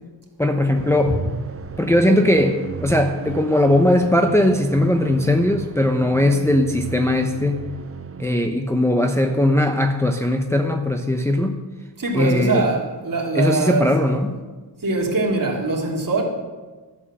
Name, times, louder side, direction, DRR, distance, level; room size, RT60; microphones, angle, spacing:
voice 1, 0.4-1.2 1.8-7.6 8.2-11.6 12.1-12.7 13.3-14.4, left 1 dB, 5° left, 4 dB, 0.8 m, -19 dB
sound 1, 0.7-8.3, right 6 dB, 30° right, 0.6 m, -34 dB
voice 2, 12.0-13.9 14.8-16.2, right 3 dB, 45° right, -1 dB, 2.9 m, -22 dB
12.5 x 8.9 x 6.3 m, 1.3 s
wide cardioid pair, 80°, 44 cm